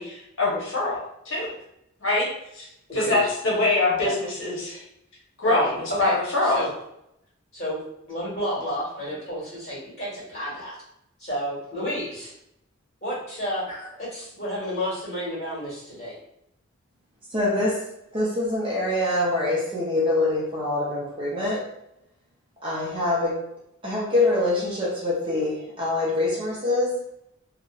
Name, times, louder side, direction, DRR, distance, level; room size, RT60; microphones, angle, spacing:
voice 1, 0.0-1.5 2.0-2.3 2.5-2.7 2.9-4.8 5.4-6.6, left 2 dB, 60° left, -5 dB, 0.9 m, -24 dB
voice 2, 3.0-3.3 4.0-4.1 4.7-4.8 5.4-6.7 7.5-7.8 8.1-10.8 11.2-12.3 13.0-13.6 14.0-16.1, equal, 35° left, -8 dB, 1.4 m, -31 dB
voice 3, 17.3-17.9 18.1-21.6 22.6-23.5 23.8-27.0, left 2 dB, 25° right, -5 dB, 0.5 m, -24 dB
2.7 x 2.0 x 2.3 m, 0.78 s
head